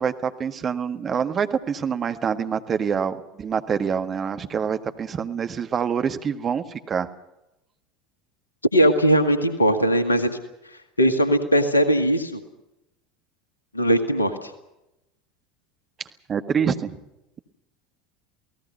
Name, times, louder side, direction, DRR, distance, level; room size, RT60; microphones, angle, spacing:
voice 1, 0.0-7.1 16.3-17.0, right 7 dB, 30° right, 8 dB, 1.7 m, -26 dB
voice 2, 8.7-10.4 11.0-12.4 13.7-14.5, equal, 85° left, 10 dB, 1.8 m, -19 dB
29.0 x 18.0 x 5.6 m, 0.89 s
figure-of-eight pair, 75°, 0 cm